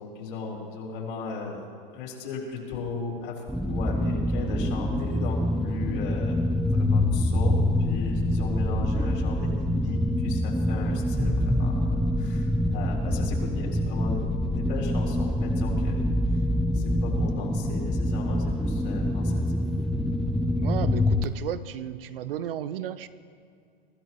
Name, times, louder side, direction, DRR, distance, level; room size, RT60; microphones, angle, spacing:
voice 1, 0.0-1.7 1.9-6.5 6.7-16.0 16.3-16.4 16.7-19.6 20.3-20.5, left 4 dB, 60° left, -2 dB, 4.0 m, -37 dB
sound 1, 3.5-21.2, left 1 dB, ahead, 0.3 m, -25 dB
voice 2, 20.6-23.1, right 10 dB, 70° right, 13 dB, 0.8 m, -33 dB
23.5 x 13.5 x 3.1 m, 2.4 s
hypercardioid pair, 115°, 29 cm